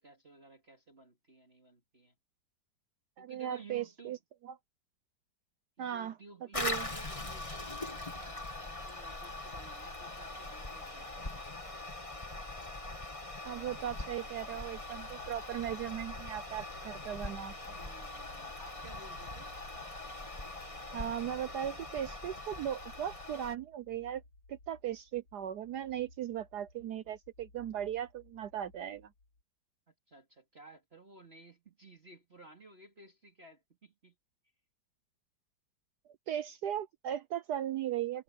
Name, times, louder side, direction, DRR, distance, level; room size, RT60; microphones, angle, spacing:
voice 1, 0.0-2.1 3.2-4.2 5.8-11.3 17.7-19.5 29.9-34.1, right 3 dB, 30° right, 2.7 m, -56 dB
voice 2, 3.2-4.2 4.4-4.6 5.8-6.2 6.5-6.9 13.4-17.5 20.9-24.2 24.5-29.1 36.3-38.2, right 10 dB, 65° right, 1.1 m, -37 dB
Toilet flush, 6.5-23.6, left 2 dB, 15° left, 1.8 m, -42 dB
sound 1, 13.4-29.4, left 2 dB, 75° left, 3.4 m, -60 dB
omnidirectional pair, 2.1 m